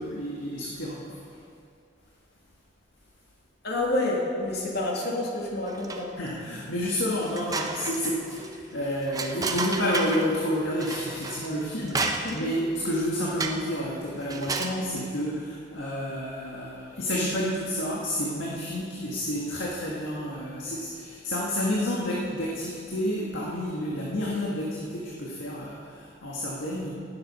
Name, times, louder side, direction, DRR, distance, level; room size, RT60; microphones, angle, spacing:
voice 1, 0.0-1.4 6.2-26.9, equal, 80° left, -4 dB, 1.8 m, -30 dB
voice 2, 3.6-6.1, left 2 dB, 60° left, -3 dB, 2.5 m, -28 dB
sound 1, 5.7-6.3 6.7-6.8 7.2-10.3 10.8-12.6 13.4-13.8 14.2-14.8, right 3 dB, 20° right, 0.8 m, -32 dB
18.5 x 7.8 x 5.6 m, 2.4 s
head